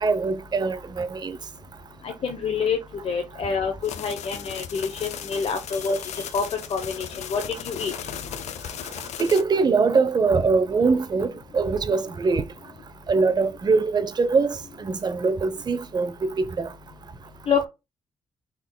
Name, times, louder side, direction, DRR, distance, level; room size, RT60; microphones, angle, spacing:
voice 1, 0.0-1.4 9.2-12.4 13.1-16.7, right 4 dB, 40° right, 0.7 m, -23 dB
voice 2, 2.0-2.8 3.0-6.0 6.3-6.4 6.7-8.1 17.5-17.7, left 5 dB, 60° left, 0.9 m, -27 dB
sound 1, 3.8-9.4, left 10 dB, 85° left, 0.6 m, -37 dB
6.1 x 3.7 x 2.2 m
cardioid pair, 100°, 11 cm